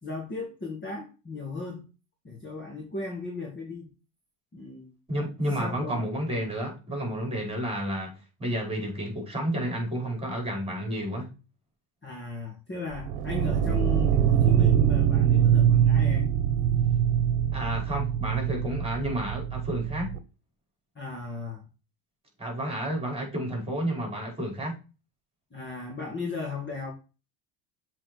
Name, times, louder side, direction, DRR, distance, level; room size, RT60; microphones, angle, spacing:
voice 1, 0.0-1.9 2.2-3.9 4.5-4.9 5.6-6.0 6.3-6.5 12.0-16.3 21.0-21.6 25.5-26.9, left 3 dB, 20° left, 2.4 m, -36 dB
voice 2, 5.1-11.3 17.5-20.1 22.4-24.8, right 1 dB, 10° right, 5.0 m, -31 dB
sound 1, 12.9-20.2, right 9 dB, 65° right, 1.2 m, -23 dB
7.5 x 4.6 x 4.5 m
supercardioid pair, 105°, 50 cm